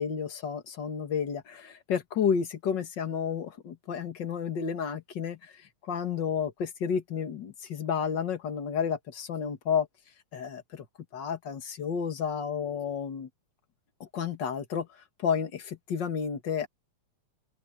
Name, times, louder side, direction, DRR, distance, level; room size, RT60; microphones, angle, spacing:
voice 1, 0.0-9.9 10.3-10.8 11.1-13.3 14.0-14.9 15.2-16.7, left 7 dB, 45° left, 1.9 m, -31 dB
open air
omnidirectional pair, 3.5 m